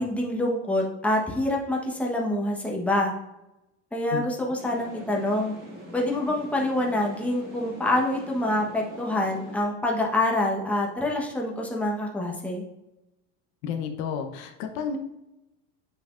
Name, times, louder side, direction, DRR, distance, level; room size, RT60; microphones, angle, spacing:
voice 1, 0.0-3.1 3.9-5.5 5.9-12.6, left 1 dB, 5° left, -1 dB, 1.1 m, -26 dB
sound 1, 4.6-9.6, right 1 dB, 25° right, 2.1 m, -43 dB
voice 2, 13.6-15.0, left 6 dB, 70° left, 6 dB, 1.0 m, -31 dB
7.7 x 5.9 x 2.5 m, 0.90 s
supercardioid pair, 130°, 36 cm